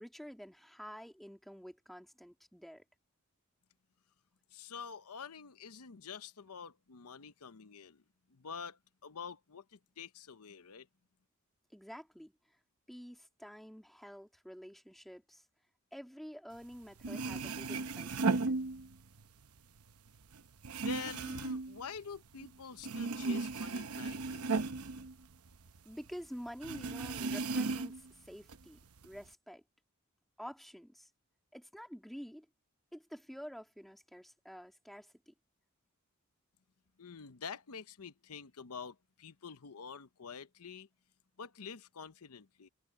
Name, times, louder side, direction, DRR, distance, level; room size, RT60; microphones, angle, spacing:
voice 1, 0.0-2.8 11.7-12.3 12.9-15.4 15.9-18.5 25.8-29.6 30.4-31.1 31.5-32.5 32.9-35.3, equal, ahead, 2.2 m, -49 dB
voice 2, 4.5-8.0 8.3-10.9 20.8-24.6 37.0-40.9 41.4-42.7, left 6 dB, 90° left, 0.8 m, -47 dB
sound 1, 16.7-16.8 17.0-19.2 19.6-22.5 22.8-25.8 26.1-26.2 26.6-28.1 28.5-29.3, right 3 dB, 80° right, 0.9 m, -36 dB
head